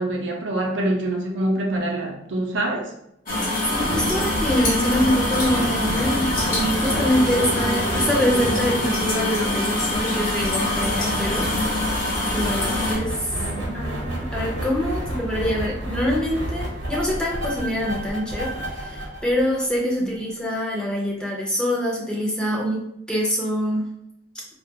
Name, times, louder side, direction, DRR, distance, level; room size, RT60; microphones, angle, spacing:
voice 1, 0.0-2.9 13.4-13.9 20.0-20.1, right 1 dB, 85° right, 0 dB, 0.5 m, -26 dB
sound 1, 3.3-13.0, left 1 dB, 50° left, 0.7 m, -24 dB
voice 2, 3.7-11.5 12.3-13.3 13.7-23.9, equal, 5° left, -3 dB, 0.5 m, -25 dB
sound 2, 3.7-20.2, right 1 dB, 70° right, 0.9 m, -31 dB
2.3 x 2.2 x 2.7 m, 0.76 s
head